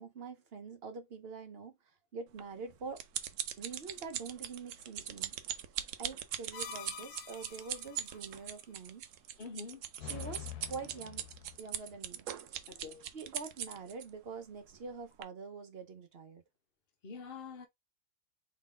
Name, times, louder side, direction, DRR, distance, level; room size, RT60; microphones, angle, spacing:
voice 1, 0.0-1.8 2.1-3.0 3.6-5.3 6.0-9.0 10.0-11.3 11.6-12.6 13.1-16.4, right 4 dB, 45° right, 0.9 m, -45 dB
sound 1, 2.4-14.1 14.7-14.9 15.2-15.3, right 10 dB, 80° right, 1.1 m, -40 dB
sound 2, 6.5-8.2 10.0-11.6, left 10 dB, 80° left, 1.2 m, -46 dB
voice 2, 9.4-9.8 12.7-13.0 17.0-17.7, left 5 dB, 40° left, 1.0 m, -45 dB
3.9 x 3.2 x 3.7 m
omnidirectional pair, 1.7 m